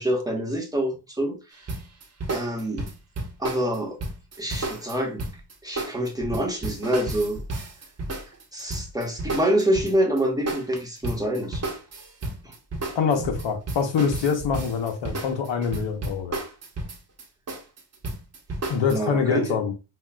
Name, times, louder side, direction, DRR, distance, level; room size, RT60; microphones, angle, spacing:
voice 1, 0.0-1.4 2.3-2.9 3.4-4.0 4.4-5.3 5.6-7.4 8.5-11.6 12.4-12.5 18.9-19.6, right 1 dB, 10° right, 1.1 m, -26 dB
sound 1, 1.7-10.2 10.5-18.9, right 2 dB, 30° right, 1.0 m, -32 dB
voice 2, 12.9-16.4 18.7-19.7, left 6 dB, 65° left, 1.0 m, -25 dB
5.5 x 2.4 x 2.2 m
cardioid pair, 90°, 48 cm